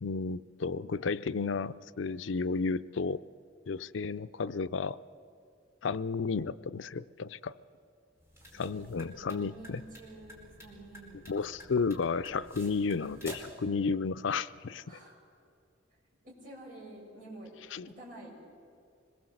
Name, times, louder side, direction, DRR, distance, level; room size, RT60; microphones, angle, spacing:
voice 1, 0.0-3.2 3.7-5.0 5.8-7.6 8.5-9.8 11.3-14.8 17.7-17.9, left 4 dB, 75° left, 15 dB, 0.5 m, -32 dB
sound 1, 8.2-13.6, equal, 15° right, 4.5 m, -50 dB
voice 2, 8.5-11.7 13.0-13.2 14.9-15.2 16.2-17.5 17.8-18.4, right 1 dB, 45° right, -3 dB, 7.1 m, -50 dB
25.0 x 21.5 x 7.9 m, 2.3 s
head